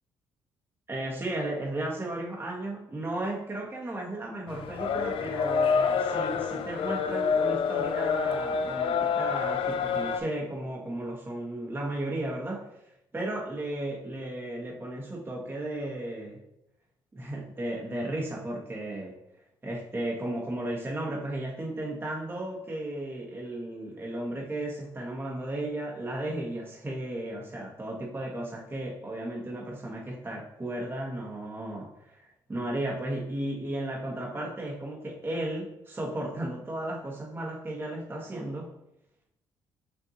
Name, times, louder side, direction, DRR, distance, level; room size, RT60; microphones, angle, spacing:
voice 1, 0.9-12.6 13.1-16.4 17.1-19.1 19.6-38.7, right 1 dB, 20° right, -2 dB, 1.5 m, -34 dB
sound 1, 4.5-10.2, left 6 dB, 60° left, 0.4 m, -27 dB
6.2 x 2.7 x 2.9 m, 0.82 s
supercardioid pair, 60°, 10 cm